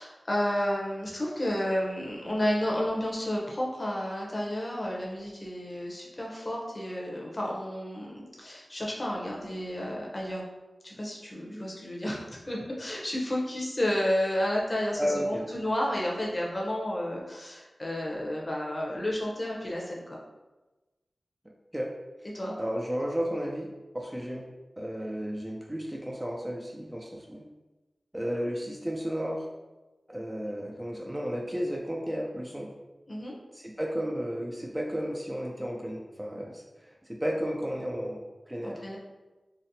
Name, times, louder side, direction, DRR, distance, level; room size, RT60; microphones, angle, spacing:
voice 1, 0.0-10.4 10.8-20.2 22.3-22.5 33.1-33.4 38.6-39.0, left 1 dB, 30° left, -3 dB, 0.7 m, -31 dB
voice 2, 15.0-15.5 21.7-21.9 22.6-23.7 23.9-27.5 28.1-29.5 30.1-32.7 33.5-38.8, equal, 15° right, -1 dB, 0.3 m, -33 dB
3.9 x 2.0 x 2.7 m, 1.1 s
wide cardioid pair, 70°, 0 cm